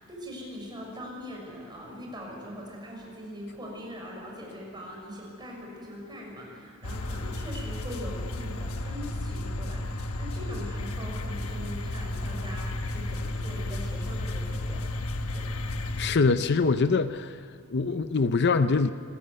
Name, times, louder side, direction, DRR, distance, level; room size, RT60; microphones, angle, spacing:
voice 1, 0.0-15.5, equal, 20° right, -1 dB, 6.4 m, -41 dB
sound 1, 6.8-16.2, left 1 dB, 75° left, 1.3 m, -33 dB
voice 2, 16.0-17.4 17.7-18.9, left 4 dB, 50° left, 11 dB, 0.6 m, -24 dB
25.5 x 15.0 x 9.7 m, 2.4 s
head